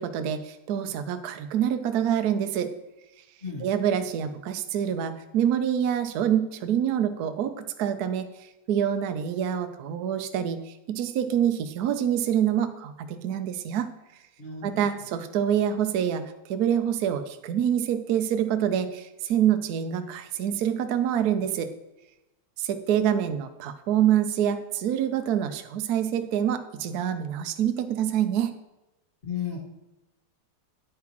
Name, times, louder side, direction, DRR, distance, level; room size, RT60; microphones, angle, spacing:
voice 1, 0.0-2.7 3.6-8.3 8.7-13.9 14.6-21.7 22.6-28.5, right 9 dB, 75° right, 8 dB, 0.9 m, -26 dB
voice 2, 14.4-14.8 29.2-29.6, left 7 dB, 30° left, -3 dB, 1.6 m, -33 dB
9.6 x 9.5 x 3.0 m, 0.97 s
omnidirectional pair, 2.4 m